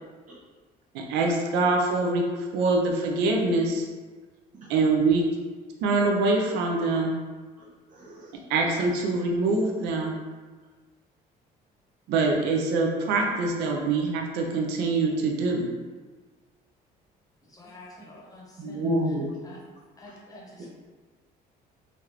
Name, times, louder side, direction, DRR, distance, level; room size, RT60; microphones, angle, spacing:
voice 1, 0.9-3.8 4.7-5.3 5.8-7.1 8.5-10.1 12.1-15.7, right 3 dB, 90° right, 1 dB, 0.5 m, -24 dB
voice 2, 17.5-18.9 19.4-19.6 20.0-20.7, left 2 dB, 20° left, -3 dB, 0.8 m, -47 dB
voice 3, 18.6-19.3, equal, 50° right, -6 dB, 0.7 m, -27 dB
3.2 x 2.5 x 2.9 m, 1.3 s
cardioid pair, 110°, 17 cm